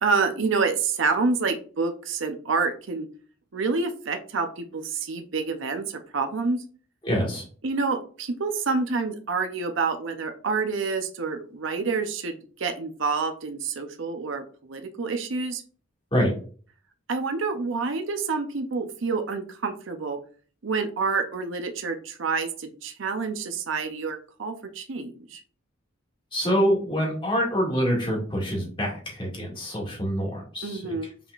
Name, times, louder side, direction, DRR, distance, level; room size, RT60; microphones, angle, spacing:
voice 1, 0.0-3.1 3.5-6.6 7.6-15.6 17.1-20.2 20.6-25.4 30.6-31.1, right 4 dB, 65° right, 6 dB, 0.6 m, -28 dB
voice 2, 7.0-7.4 16.1-16.3 26.3-30.9, equal, 25° left, -3 dB, 2.0 m, -25 dB
5.7 x 3.6 x 2.4 m, 0.42 s
head